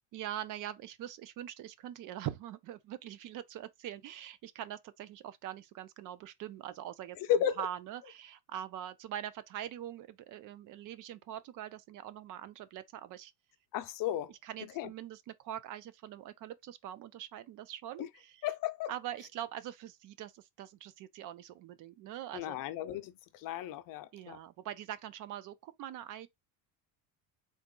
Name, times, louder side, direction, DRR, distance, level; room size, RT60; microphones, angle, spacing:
voice 1, 0.1-7.2 7.6-13.3 14.3-18.5 18.9-22.6 24.1-26.3, right 11 dB, 50° right, 0.5 m, -43 dB
voice 2, 7.3-7.7 13.7-14.3 14.8-14.9 18.0-18.1 18.4-18.9 22.3-24.4, left 10 dB, 50° left, 0.6 m, -34 dB
3.9 x 2.5 x 3.7 m
cardioid pair, 130°, 41 cm